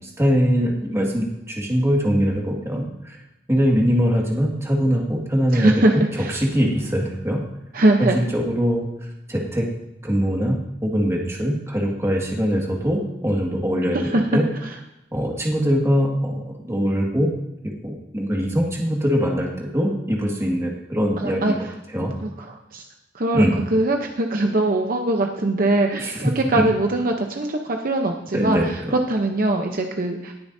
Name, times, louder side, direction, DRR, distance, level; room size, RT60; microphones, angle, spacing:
voice 1, 0.2-3.2 3.5-6.0 6.3-7.4 8.0-8.9 9.3-9.7 10.0-14.4 15.1-17.3 17.6-21.6 21.9-22.1 23.3-23.6 26.0-26.2 26.6-26.7 28.3-28.9, equal, 15° right, -1 dB, 1.9 m, -22 dB
voice 2, 5.5-6.4 7.7-8.2 13.9-14.2 14.6-14.8 21.2-21.5 22.2-22.8 23.1-30.3, right 2 dB, 55° right, 3 dB, 0.8 m, -22 dB
20.0 x 7.0 x 2.7 m, 0.91 s
head